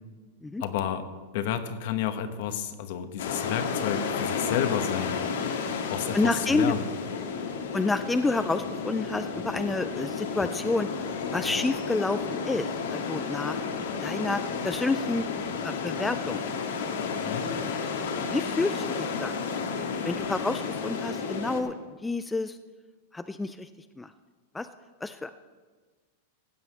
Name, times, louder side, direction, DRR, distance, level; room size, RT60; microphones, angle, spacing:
voice 1, 0.6-1.1 1.3-5.2 5.9-6.8 17.2-17.5, left 9 dB, 55° left, 10 dB, 1.1 m, -30 dB
sound 1, 3.2-21.6, left 5 dB, 85° left, 1.8 m, -32 dB
voice 2, 6.1-6.7 7.7-13.6 14.0-15.3 15.6-16.4 17.3-17.7 18.3-19.4 20.0-22.6 23.1-23.7 24.0-24.1 24.5-24.7 25.0-25.3, left 3 dB, 5° left, 10 dB, 0.3 m, -29 dB
15.5 x 5.6 x 7.9 m, 1.4 s
supercardioid pair, 150°, 0 cm